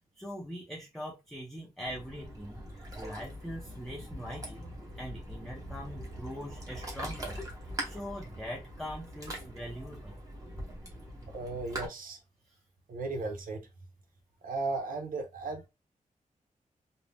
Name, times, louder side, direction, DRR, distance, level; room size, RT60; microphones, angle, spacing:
voice 1, 0.2-4.7 4.9-7.4 7.8-10.1, equal, ahead, 0.6 m, -42 dB
Ocean, 1.8-11.9, right 1 dB, 25° right, 1.0 m, -42 dB
voice 2, 11.3-12.2 12.9-13.7 14.4-15.7, right 3 dB, 90° right, 0.7 m, -36 dB
2.6 x 2.0 x 3.3 m
wide cardioid pair, 140°, 14 cm